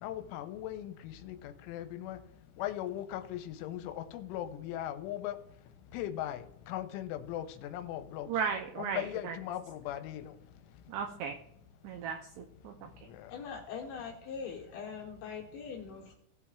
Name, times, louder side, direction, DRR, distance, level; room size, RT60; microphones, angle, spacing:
voice 1, 0.0-2.2 2.6-5.4 5.9-8.3 8.8-10.3 13.1-13.3, left 12 dB, 85° left, 9 dB, 3.1 m, -39 dB
voice 2, 8.3-9.4 10.9-11.4 11.8-12.9, right 6 dB, 80° right, 5 dB, 2.6 m, -36 dB
voice 3, 13.3-16.2, left 6 dB, 70° left, 0 dB, 2.6 m, -42 dB
17.0 x 8.4 x 2.4 m, 0.75 s
omnidirectional pair, 5.6 m